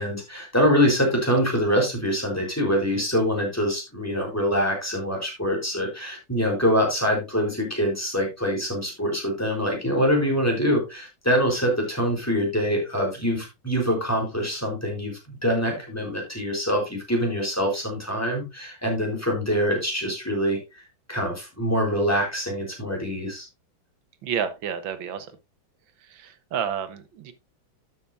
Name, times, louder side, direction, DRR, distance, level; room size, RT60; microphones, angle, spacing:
voice 1, 0.0-15.1 15.4-20.8 21.1-23.5, equal, 5° left, 3.8 m, -24 dB
voice 2, 24.2-25.3 26.1-27.3, right 8 dB, 80° right, 1.8 m, -30 dB
12.5 x 7.1 x 2.6 m
omnidirectional pair, 2.1 m